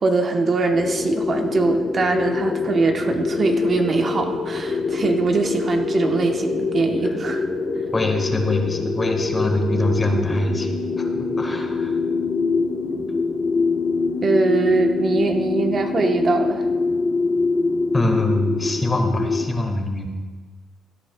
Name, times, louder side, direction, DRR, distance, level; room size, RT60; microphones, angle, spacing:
voice 1, 0.0-7.4 14.2-16.6, right 3 dB, 45° right, 4 dB, 0.9 m, -22 dB
sound 1, 0.7-19.5, left 4 dB, 45° left, 0.8 m, -24 dB
voice 2, 7.9-12.0 17.9-20.1, left 1 dB, 25° left, 4 dB, 1.4 m, -24 dB
16.0 x 9.9 x 2.2 m, 1.4 s
cardioid pair, 90°, 0 cm